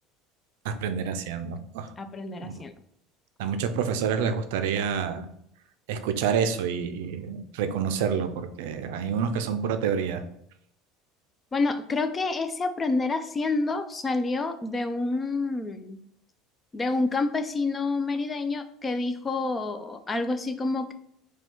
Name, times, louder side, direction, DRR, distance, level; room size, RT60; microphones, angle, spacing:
voice 1, 0.6-1.9 2.4-2.5 3.4-5.3 5.9-10.2, right 7 dB, 80° right, 9 dB, 0.4 m, -28 dB
voice 2, 2.0-2.7 11.5-16.0 16.7-20.9, left 3 dB, 20° left, 9 dB, 0.4 m, -28 dB
4.8 x 2.3 x 3.7 m, 0.72 s
supercardioid pair, 110°, 0 cm